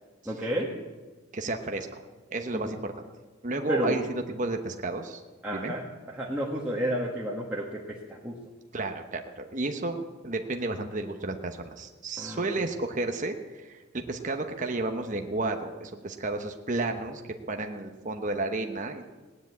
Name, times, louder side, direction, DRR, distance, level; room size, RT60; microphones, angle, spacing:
voice 1, 0.2-0.7 2.6-2.7 3.7-4.0 5.4-8.4 12.2-12.7, equal, 5° right, -5 dB, 1.6 m, -31 dB
voice 2, 1.3-1.9 2.3-3.0 3.4-5.2 5.5-5.7 8.7-17.2 17.5-19.0, right 2 dB, 35° right, 4 dB, 1.0 m, -32 dB
17.5 x 10.0 x 8.3 m, 1.3 s
head